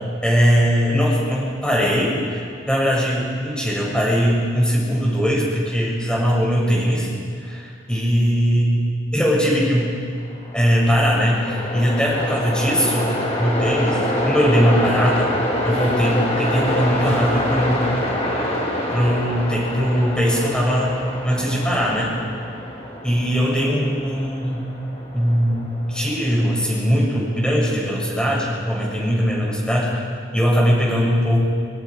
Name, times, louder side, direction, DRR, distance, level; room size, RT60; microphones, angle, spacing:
voice 1, 0.2-7.1 7.5-8.8 9.1-9.9 10.5-13.1 13.4-15.3 15.6-17.9 18.9-20.9 21.2-22.1 23.0-24.6 25.1-30.0 30.3-31.4, equal, 5° left, -4 dB, 6.7 m, -20 dB
Train, 10.3-27.5, left 1 dB, 35° left, 3.3 m, -26 dB
25.5 x 24.0 x 4.9 m, 2.3 s
head